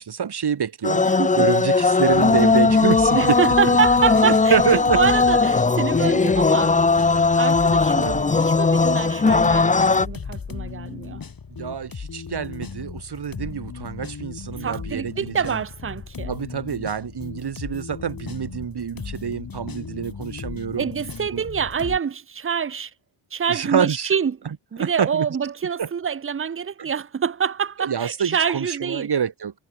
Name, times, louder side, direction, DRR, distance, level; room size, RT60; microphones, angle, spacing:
voice 1, 0.0-1.1 1.4-3.7 4.2-5.0 7.1-7.2 8.0-8.3 11.5-15.6 16.3-20.9 21.3-21.5 23.5-24.2 24.8-25.3 25.8-25.9 26.8-26.9 27.8-29.5, right 7 dB, 55° right, 1.8 m, -26 dB
sound 1, 0.8-10.1, left 4 dB, 15° left, 0.6 m, -18 dB
voice 2, 1.1-1.4 3.1-6.8 7.4-9.7 10.0-11.2 14.6-16.3 20.8-22.9 23.3-24.3 24.7-29.1, right 7 dB, 25° right, 0.6 m, -26 dB
sound 2, 2.1-22.0, left 5 dB, 45° left, 2.6 m, -36 dB
cardioid pair, 80°, 48 cm